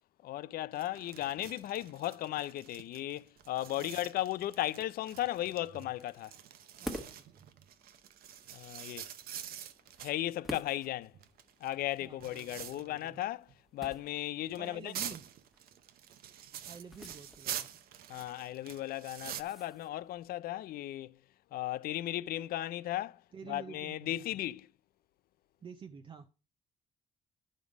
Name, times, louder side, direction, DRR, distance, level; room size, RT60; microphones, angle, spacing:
voice 1, 0.2-6.3 8.5-9.1 10.0-11.1 11.6-14.9 18.1-21.2 21.5-24.7, left 14 dB, 75° left, 0.5 m, -36 dB
sound 1, 0.7-10.2 11.0-13.2 13.5-13.6 14.4-19.4, right 10 dB, 70° right, 0.8 m, -46 dB
sound 2, 6.7-20.3, equal, ahead, 1.2 m, -51 dB
voice 2, 6.8-7.5 12.0-13.2 14.6-15.3 16.6-17.8 23.3-24.3 25.6-26.3, right 6 dB, 30° right, 0.6 m, -50 dB
11.0 x 5.2 x 5.1 m
cardioid pair, 170°, 16 cm